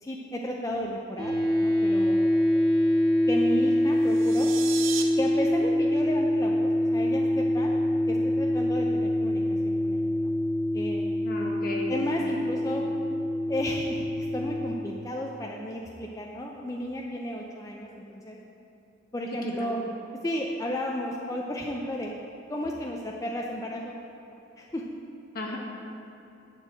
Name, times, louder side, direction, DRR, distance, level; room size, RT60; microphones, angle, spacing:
voice 1, 0.0-1.3 1.6-2.3 3.3-4.5 5.2-7.7 8.1-10.3 10.7-11.2 11.9-12.8 13.5-18.4 19.1-19.8 20.2-22.1 22.5-24.0 24.3-24.8, left 1 dB, 15° left, -1 dB, 0.5 m, -33 dB
sound 1, 1.2-14.7, left 1 dB, 25° right, 2.3 m, -25 dB
sound 2, 4.0-5.0, right 9 dB, 85° right, 0.8 m, -35 dB
voice 2, 11.2-12.0 19.4-19.7 25.3-25.6, left 2 dB, 50° left, -1 dB, 1.5 m, -34 dB
11.0 x 4.7 x 7.6 m, 2.9 s
head